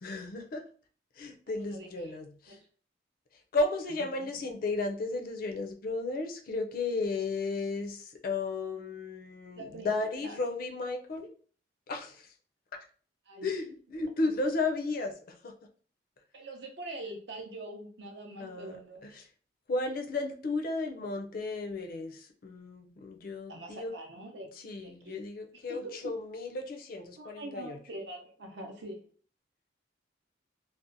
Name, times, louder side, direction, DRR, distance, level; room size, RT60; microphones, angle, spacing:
voice 1, 0.0-0.6 1.2-2.6 3.5-11.3 11.9-12.3 12.7-12.8 13.4-15.5 18.4-19.3 19.7-23.9 24.5-27.8, left 3 dB, 50° left, 4 dB, 0.4 m, -34 dB
voice 2, 1.5-2.1 2.5-2.6 4.2-4.3 9.5-9.9 10.2-10.4 13.3-13.5 16.3-19.0 23.5-24.5 24.8-25.2 25.7-26.1 27.2-29.1, right 1 dB, 65° right, 3 dB, 0.5 m, -44 dB
2.7 x 2.1 x 2.5 m, 0.43 s
head